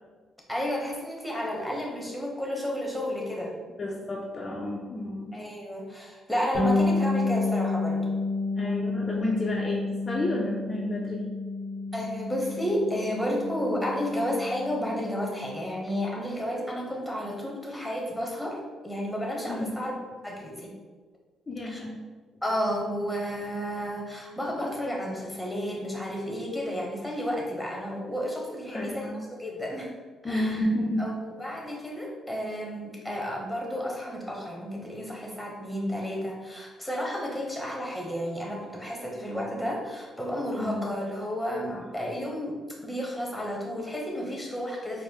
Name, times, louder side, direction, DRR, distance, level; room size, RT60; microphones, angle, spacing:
voice 1, 0.5-3.5 5.3-8.0 11.9-20.0 20.2-20.7 21.6-21.8 22.4-29.1 29.4-29.9 30.2-30.6 31.0-42.6 42.8-45.0, equal, ahead, -2 dB, 1.0 m, -32 dB
voice 2, 3.8-5.4 8.6-11.3 19.5-19.7 21.5-22.0 28.7-29.2 30.2-31.2 40.6-40.9 41.7-41.8, left 1 dB, 35° left, -2 dB, 0.5 m, -31 dB
Bass guitar, 6.5-16.2, left 3 dB, 50° right, 1.5 m, -30 dB
4.5 x 2.0 x 3.5 m, 1.4 s
cardioid pair, 90°, 0 cm